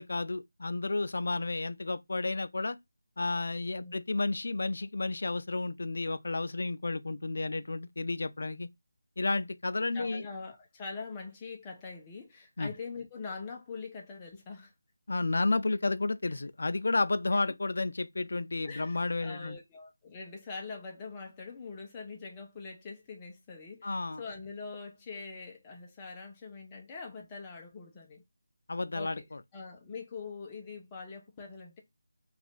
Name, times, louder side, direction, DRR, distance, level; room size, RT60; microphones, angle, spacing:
voice 1, 0.0-2.8 3.2-8.7 9.2-10.3 12.6-12.7 15.1-19.6 23.8-24.2 28.7-29.4, left 3 dB, 60° left, 0.3 m, -31 dB
voice 2, 9.9-14.7 18.6-28.2 28.9-29.2 29.5-31.8, left 4 dB, 15° left, 0.6 m, -43 dB
2.5 x 2.4 x 3.5 m
figure-of-eight pair, 170°, 0 cm